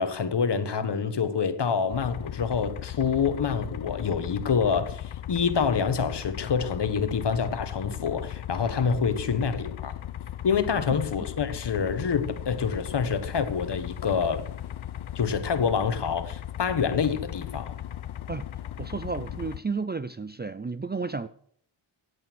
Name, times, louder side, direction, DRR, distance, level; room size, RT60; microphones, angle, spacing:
voice 1, 0.0-9.9 10.4-14.5 15.1-17.8, left 6 dB, 60° left, 1.4 m, -27 dB
sound 1, 1.9-19.6, left 11 dB, 85° left, 0.9 m, -37 dB
voice 2, 18.8-21.3, right 4 dB, 20° right, 0.5 m, -32 dB
16.5 x 8.4 x 6.2 m
wide cardioid pair, 115°, 47 cm